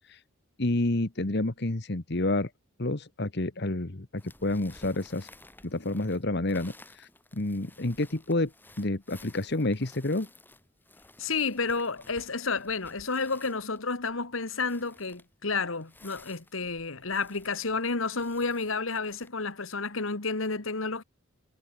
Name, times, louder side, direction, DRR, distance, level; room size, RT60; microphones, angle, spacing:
voice 1, 0.6-2.5 2.8-5.3 5.6-8.5 8.8-10.3, left 2 dB, 50° left, 1.4 m, -29 dB
sound 1, 4.2-19.3, left 2 dB, 10° left, 4.0 m, -55 dB
voice 2, 11.2-21.0, left 4 dB, 70° left, 1.8 m, -31 dB
head